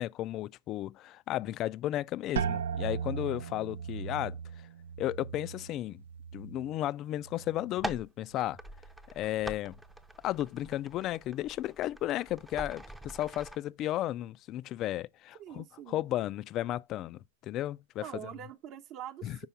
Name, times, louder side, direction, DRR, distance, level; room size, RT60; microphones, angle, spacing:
voice 1, 0.0-4.4 5.0-6.0 6.3-8.6 9.1-9.8 10.2-18.0 19.2-19.4, left 14 dB, 40° left, 0.3 m, -34 dB
sound 1, 2.4-8.0 8.3-9.0 9.6-10.0, right 7 dB, 85° right, 0.4 m, -38 dB
sound 2, 7.6-13.6, right 1 dB, 5° right, 0.6 m, -44 dB
voice 2, 15.3-16.1 18.0-19.5, right 11 dB, 45° right, 0.9 m, -44 dB
5.6 x 4.8 x 5.7 m
hypercardioid pair, 125°, 0 cm